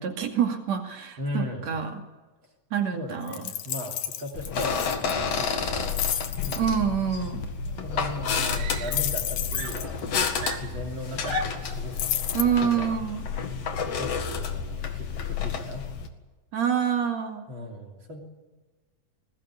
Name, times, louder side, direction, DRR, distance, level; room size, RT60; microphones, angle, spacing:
voice 1, 0.0-1.9 2.7-3.4 6.6-7.5 12.3-13.3 16.5-17.5, right 8 dB, 60° right, 4 dB, 3.5 m, -26 dB
voice 2, 1.2-1.7 2.9-6.0 6.4-6.7 7.6-10.0 10.4-12.0 12.6-12.9 13.8-15.9 17.5-18.2, left 1 dB, 40° right, 1 dB, 3.7 m, -37 dB
sound 1, 3.3-5.1 5.7-6.6 8.9-10.0 11.9-12.4, left 10 dB, 80° left, 2.9 m, -31 dB
sound 2, 4.3-16.1, left 6 dB, 55° left, 2.8 m, -30 dB
Screaming, 7.7-7.8 8.5-9.3 9.5-11.8 12.8-13.1, right 11 dB, 90° right, 2.7 m, -40 dB
21.5 x 19.0 x 9.8 m, 1.2 s
omnidirectional pair, 3.5 m